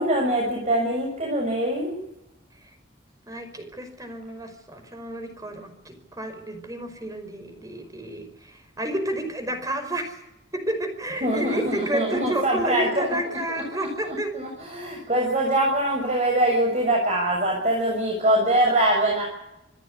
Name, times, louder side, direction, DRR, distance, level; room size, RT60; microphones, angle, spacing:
voice 1, 0.0-2.0 11.2-13.1 14.0-19.2, right 1 dB, 40° right, -1 dB, 7.0 m, -23 dB
voice 2, 3.3-10.2 10.5-14.3, right 1 dB, 20° right, 7 dB, 5.3 m, -30 dB
27.5 x 13.5 x 9.7 m, 0.89 s
head